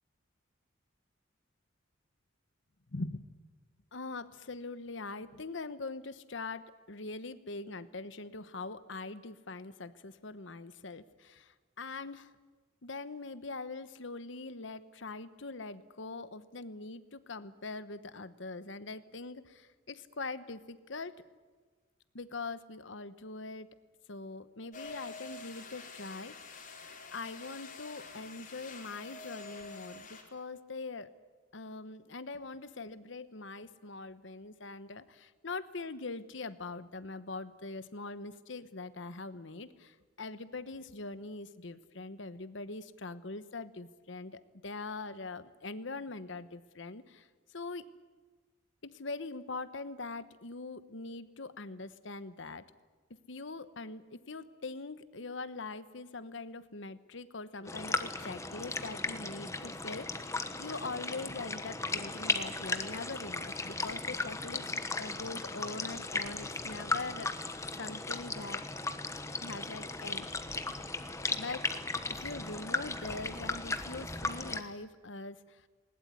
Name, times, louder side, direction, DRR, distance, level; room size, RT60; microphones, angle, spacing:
voice 1, 2.9-3.3 3.9-12.3 12.8-21.2 22.1-23.7 24.1-26.6 27.1-31.1 31.5-47.9 48.8-52.6 53.3-68.6 69.4-70.3 71.3-71.7 72.2-75.6, left 3 dB, 65° left, 13 dB, 1.1 m, -42 dB
sound 1, 24.7-30.2, left 4 dB, 40° left, 3.8 m, -48 dB
sound 2, 57.6-74.6, left 3 dB, 15° left, 1.2 m, -36 dB
20.0 x 20.0 x 9.6 m, 1.4 s
head